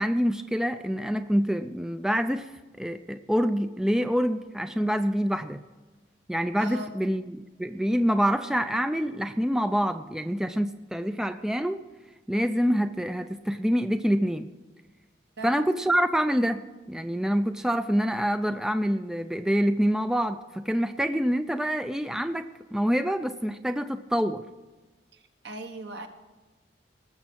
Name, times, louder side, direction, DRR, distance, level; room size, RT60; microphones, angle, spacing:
voice 1, 0.0-2.5 2.8-5.6 6.3-11.8 12.3-14.5 15.4-16.6 16.9-24.4, equal, 5° right, 9 dB, 0.4 m, -26 dB
voice 2, 6.6-6.9 15.4-15.5 25.1-26.1, right 1 dB, 65° right, 5 dB, 1.4 m, -39 dB
19.0 x 7.2 x 6.3 m, 1.2 s
head